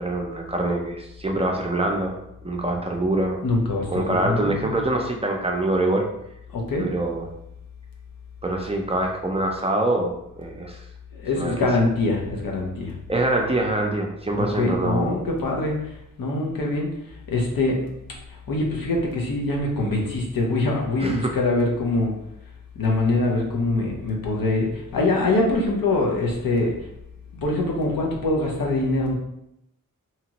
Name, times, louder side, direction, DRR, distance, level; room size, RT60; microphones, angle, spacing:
voice 1, 0.0-2.1 2.4-3.4 3.9-6.0 6.8-7.3 8.4-10.8 11.3-11.7 13.1-15.1 21.0-21.3, right 2 dB, 20° right, 1 dB, 0.4 m, -24 dB
voice 2, 3.4-4.7 6.5-6.9 11.1-12.9 14.4-16.9 17.3-17.9 18.5-22.1 22.8-26.7 27.3-29.1, left 2 dB, 85° left, -1 dB, 0.7 m, -24 dB
2.8 x 2.4 x 2.9 m, 0.80 s
wide cardioid pair, 75°, 33 cm